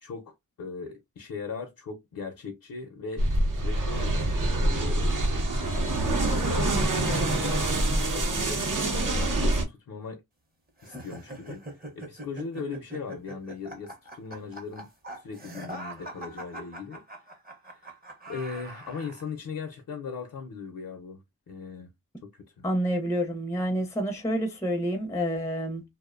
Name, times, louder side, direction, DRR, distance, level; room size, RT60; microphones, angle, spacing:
voice 1, 0.0-3.3 3.6-5.1 5.7-10.2 10.8-14.9 15.2-17.0 18.3-21.9 22.2-22.6, left 5 dB, 65° left, 0.5 m, -39 dB
sound 1, 3.2-9.6, right 1 dB, 65° right, 0.7 m, -25 dB
sound 2, 10.8-19.3, right 1 dB, 25° right, 0.7 m, -42 dB
voice 2, 22.6-25.8, equal, 10° left, 0.5 m, -28 dB
2.5 x 2.0 x 2.3 m
wide cardioid pair, 95°, 35 cm